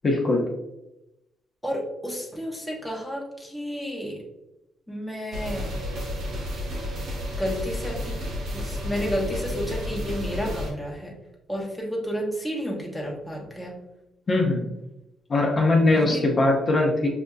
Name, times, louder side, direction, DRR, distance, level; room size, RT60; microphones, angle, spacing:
voice 1, 0.0-0.4 14.3-14.7 15.3-17.1, left 2 dB, 40° left, -1 dB, 0.9 m, -21 dB
voice 2, 1.6-4.2 4.9-5.7 7.3-8.2 8.5-11.2 11.5-13.8 15.9-16.3, equal, 5° left, -2 dB, 1.0 m, -31 dB
sound 1, 5.3-10.7, left 1 dB, 75° right, 1.0 m, -31 dB
6.0 x 2.6 x 2.3 m, 0.91 s
cardioid pair, 90°, 0 cm